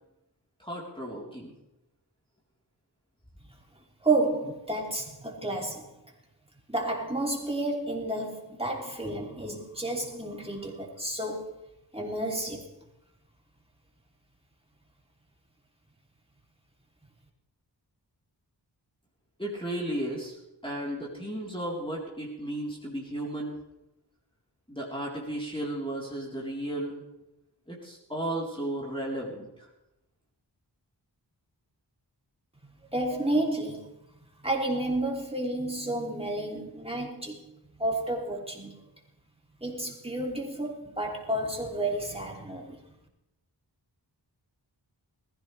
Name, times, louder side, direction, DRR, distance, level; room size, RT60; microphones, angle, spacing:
voice 1, 0.6-1.5 19.4-20.4 20.6-23.6 24.7-27.0 27.7-29.7, right 1 dB, 10° left, 3.9 m, -34 dB
voice 2, 4.0-5.9 6.7-11.5 11.9-12.7 32.9-33.9 34.4-37.4 37.8-38.8 39.6-42.8, right 2 dB, 15° right, 3.2 m, -31 dB
20.5 x 15.5 x 3.4 m
wide cardioid pair, 50°, 44 cm